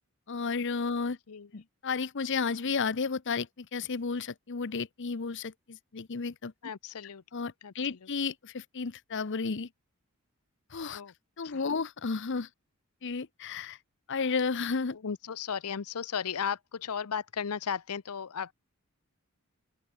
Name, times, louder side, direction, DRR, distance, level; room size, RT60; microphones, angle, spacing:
voice 1, 0.3-1.2 1.5-6.5 7.3-9.7 10.7-11.0 11.4-12.5 13.0-13.8 14.1-15.0, left 5 dB, 55° left, 0.8 m, -32 dB
voice 2, 6.6-7.2 7.6-7.7 10.9-11.1 11.4-11.5 15.0-18.5, left 7 dB, 90° left, 0.7 m, -35 dB
open air
head